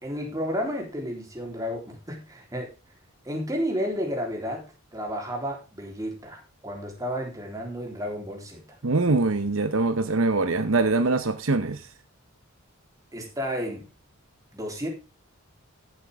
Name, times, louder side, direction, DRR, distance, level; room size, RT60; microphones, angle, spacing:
voice 1, 0.0-2.7 3.3-4.7 4.9-8.6 13.1-13.8 14.5-14.9, equal, 15° right, 0 dB, 3.5 m, -32 dB
voice 2, 8.8-11.8, right 3 dB, 70° right, 9 dB, 0.9 m, -23 dB
15.5 x 7.8 x 3.5 m, 0.28 s
head